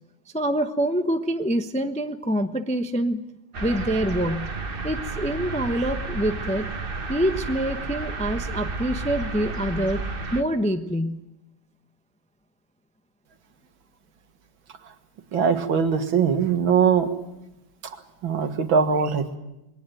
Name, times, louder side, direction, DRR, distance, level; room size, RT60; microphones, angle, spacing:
voice 1, 0.3-3.2 3.6-4.5 4.8-6.7 7.1-10.0 10.3-11.3 19.0-19.1, right 1 dB, 10° left, 7 dB, 0.4 m, -26 dB
sound 1, 3.5-10.4, right 3 dB, 30° right, 1.3 m, -32 dB
voice 2, 15.3-17.1 17.8-18.0 18.2-19.4, right 6 dB, 80° right, 7 dB, 2.4 m, -21 dB
22.0 x 18.5 x 9.1 m, 0.93 s
omnidirectional pair, 2.1 m